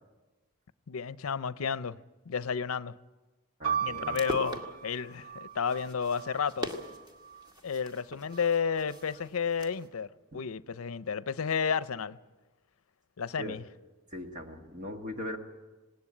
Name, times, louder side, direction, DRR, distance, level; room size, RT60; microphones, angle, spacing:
voice 1, 0.9-2.0 2.3-2.9 3.8-6.7 7.6-10.1 10.3-12.2 13.2-13.6, left 6 dB, 85° left, 0.6 m, -32 dB
voice 2, 3.6-4.2 10.3-10.4 13.4-13.5 14.1-15.4, equal, 35° right, 1.5 m, -39 dB
sound 1, 3.6-7.5 8.3-9.0, right 8 dB, 75° right, 1.1 m, -38 dB
sound 2, 3.9-9.9, left 1 dB, 20° right, 1.9 m, -42 dB
19.5 x 18.0 x 8.7 m
head